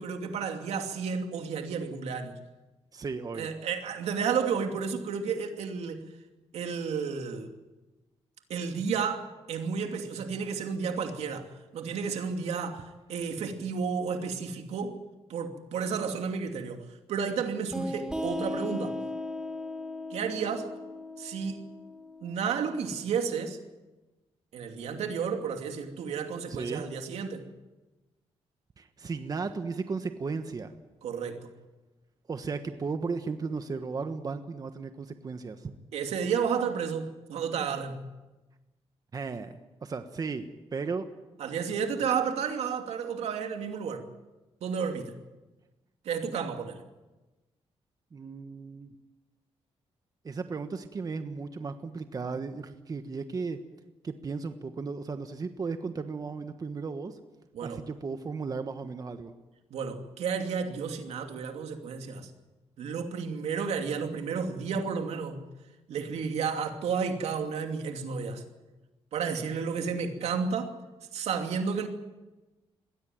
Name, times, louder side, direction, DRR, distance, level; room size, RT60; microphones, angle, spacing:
voice 1, 0.0-2.4 3.3-6.0 6.5-7.5 8.5-15.0 15.3-19.0 20.1-20.7 21.2-21.6 22.2-23.6 24.5-27.4 31.0-31.5 35.9-38.0 41.4-44.1 44.6-45.2 46.0-46.8 57.5-57.8 59.7-62.3 62.8-65.4 65.9-68.4 69.1-70.7 71.1-71.9, right 6 dB, 85° right, 5 dB, 2.6 m, -32 dB
voice 2, 2.9-3.5 26.6-26.8 28.8-30.7 32.3-35.7 39.1-40.4 40.7-41.1 48.1-48.9 50.2-53.6 54.0-57.2 57.6-59.3, right 4 dB, 35° right, 8 dB, 1.3 m, -35 dB
sound 1, 17.7-23.1, left 1 dB, 5° right, 3.1 m, -37 dB
21.5 x 16.5 x 9.2 m, 1.1 s
cardioid pair, 115°, 11 cm